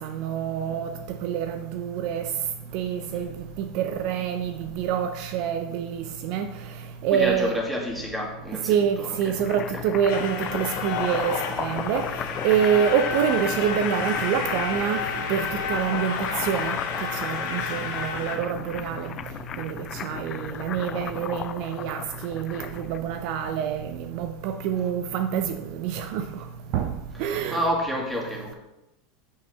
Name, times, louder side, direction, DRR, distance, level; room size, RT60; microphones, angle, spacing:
voice 1, 0.0-0.9 1.2-2.2 2.7-3.3 3.6-6.5 7.0-7.6 8.7-12.0 12.4-15.0 15.3-16.8 17.2-19.1 19.6-19.8 20.0-26.2 26.7-26.9 27.2-27.6, right 8 dB, 60° right, 0.6 m, -26 dB
voice 2, 7.1-9.4 9.7-9.8 27.4-28.5, equal, 5° right, 2.1 m, -29 dB
sound 1, 9.1-23.0, left 8 dB, 40° left, 0.4 m, -36 dB
sound 2, 10.1-18.4, left 6 dB, 65° left, 1.2 m, -31 dB
8.3 x 6.6 x 3.5 m
hypercardioid pair, 95°, 0 cm